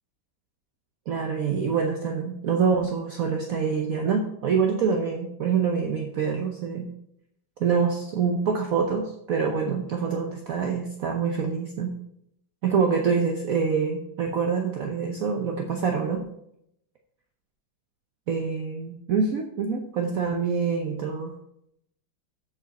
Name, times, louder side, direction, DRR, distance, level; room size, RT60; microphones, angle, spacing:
voice 1, 1.1-6.9 7.6-11.9 12.6-16.2 18.3-21.3, right 6 dB, 55° right, 2 dB, 1.1 m, -26 dB
13.5 x 5.1 x 4.1 m, 0.77 s
omnidirectional pair, 2.1 m